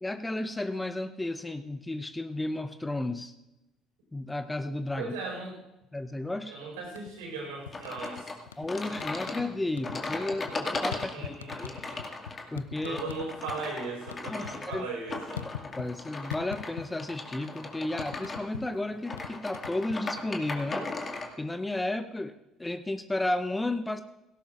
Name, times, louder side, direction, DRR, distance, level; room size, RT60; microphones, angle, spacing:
voice 1, 0.0-3.3 4.1-5.1 5.9-6.6 8.6-11.7 12.5-13.0 14.3-14.9 15.6-20.9 21.4-24.0, left 2 dB, 15° left, 10 dB, 0.8 m, -33 dB
voice 2, 5.0-5.6 6.5-8.3 10.9-12.1 12.8-15.4, right 3 dB, 75° right, -2 dB, 4.6 m, -38 dB
sound 1, 6.8-7.3 7.7-8.7 9.0-9.5 9.7-13.6 13.9-16.0 16.3-17.2 17.4-20.3, left 9 dB, 85° left, 0.3 m, -42 dB
sound 2, 7.7-21.3, left 3 dB, 30° left, 2.0 m, -38 dB
17.5 x 17.0 x 2.5 m, 0.95 s
hypercardioid pair, 55°, 0 cm